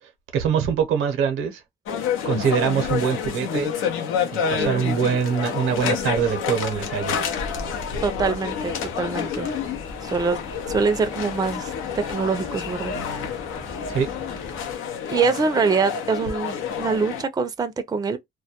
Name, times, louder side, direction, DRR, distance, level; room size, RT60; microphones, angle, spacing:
voice 1, 0.0-1.6 2.2-3.7 4.3-7.2 13.9-14.1, right 7 dB, 90° right, 0.6 m, -24 dB
sound 1, 1.9-17.2, left 7 dB, 90° left, 0.6 m, -29 dB
voice 2, 4.6-4.9 8.0-9.5 10.0-10.4 10.7-12.9 15.1-18.2, right 5 dB, 20° right, 0.4 m, -24 dB
sound 2, 6.6-14.8, left 3 dB, 40° left, 0.8 m, -42 dB
2.2 x 2.2 x 2.8 m
cardioid pair, 90°, 20 cm